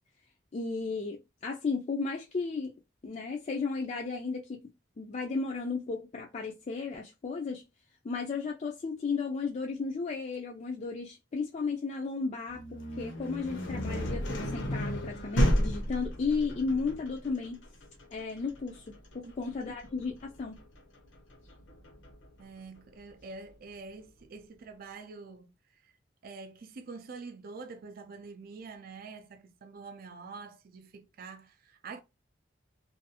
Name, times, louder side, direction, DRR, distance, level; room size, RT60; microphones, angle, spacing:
voice 1, 0.5-2.7 3.0-4.6 5.0-7.6 8.0-17.6 18.1-20.6, left 4 dB, 40° left, 0.4 m, -34 dB
sound 1, 12.5-22.3, equal, 80° left, 0.8 m, -33 dB
voice 2, 22.4-25.5 25.8-25.9 26.2-32.0, right 4 dB, 50° right, 0.4 m, -46 dB
2.6 x 2.3 x 2.7 m
head